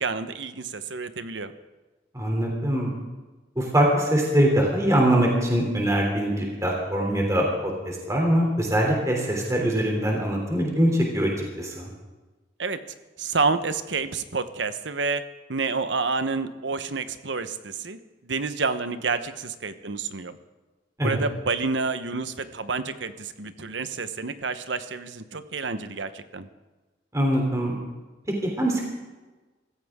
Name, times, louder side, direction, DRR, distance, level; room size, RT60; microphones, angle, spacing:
voice 1, 0.0-1.5 12.6-12.8 13.2-15.2 15.5-20.4 21.0-26.5, right 4 dB, 80° right, 10 dB, 1.0 m, -29 dB
voice 2, 2.1-2.9 3.6-11.3 11.6-11.9 21.0-21.2 27.1-27.8 28.4-28.8, right 1 dB, 15° right, -1 dB, 3.1 m, -23 dB
25.0 x 15.0 x 3.7 m, 1.2 s
head